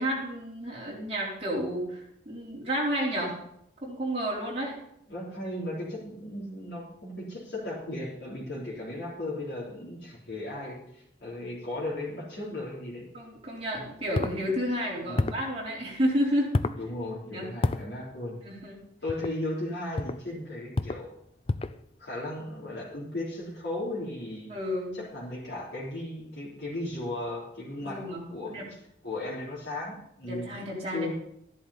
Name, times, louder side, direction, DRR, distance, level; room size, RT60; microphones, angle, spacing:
voice 1, 0.0-3.4 3.8-4.8 13.1-16.5 17.3-17.5 18.4-18.8 24.5-25.0 27.8-28.7 30.2-31.1, equal, 35° right, -5 dB, 3.9 m, -31 dB
voice 2, 5.1-13.1 15.0-15.3 16.7-18.4 19.0-21.1 22.0-24.5 24.9-28.6 29.0-30.5 30.9-31.1, left 1 dB, 70° left, -6 dB, 3.4 m, -36 dB
sound 1, 14.1-14.4 15.2-15.5 16.5-16.8 17.6-17.9 19.1-19.4 20.0-20.2 20.7-21.1 21.5-21.8, left 2 dB, 30° left, 0.4 m, -29 dB
13.5 x 10.5 x 4.2 m, 0.74 s
head